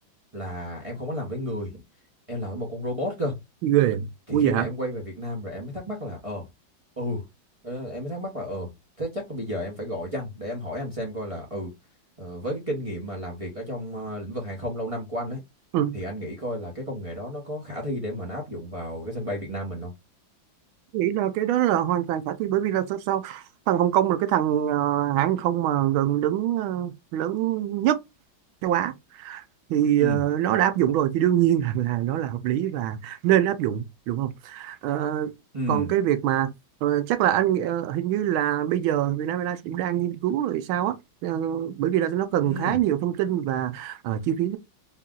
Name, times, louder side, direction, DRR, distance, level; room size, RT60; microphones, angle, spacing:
voice 1, 0.3-1.8 2.3-3.4 4.3-6.5 7.0-7.2 7.6-8.7 9.0-11.7 12.2-15.4 15.9-19.9 30.0-30.2 35.5-35.9 42.4-42.8, equal, 25° right, 0.8 m, -32 dB
voice 2, 3.6-4.7 15.7-15.9 20.9-28.0 28.6-29.4 29.7-35.3 35.7-36.5 36.8-40.9 41.2-44.6, right 11 dB, 85° right, 1.5 m, -24 dB
4.3 x 2.4 x 3.7 m
omnidirectional pair, 2.2 m